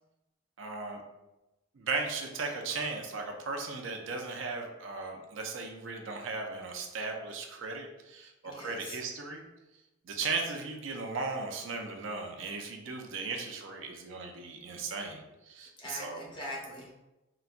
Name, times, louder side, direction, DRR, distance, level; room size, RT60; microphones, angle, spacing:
voice 1, 0.6-1.0 1.7-9.4 10.0-16.3, right 4 dB, 75° right, 3 dB, 0.5 m, -37 dB
voice 2, 8.4-9.0 15.8-16.9, left 1 dB, 25° left, -4 dB, 0.8 m, -42 dB
3.9 x 2.2 x 2.4 m, 0.99 s
head